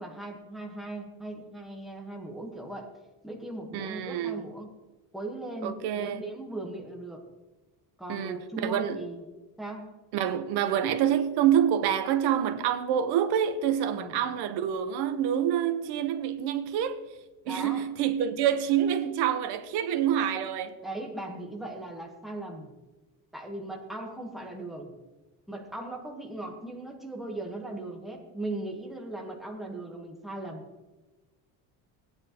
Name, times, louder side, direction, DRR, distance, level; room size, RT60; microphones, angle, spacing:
voice 1, 0.0-2.9 3.2-4.7 5.1-7.2 8.0-9.2 9.6-9.9 13.9-14.2 17.4-17.8 20.8-22.7 23.3-24.9 25.5-30.6, right 2 dB, ahead, 1.2 m, -38 dB
voice 2, 3.7-4.4 5.6-6.2 8.1-9.0 10.1-17.0 17.5-20.7, right 9 dB, 70° right, 1.1 m, -27 dB
17.5 x 9.7 x 3.0 m
cardioid pair, 170°, 40 cm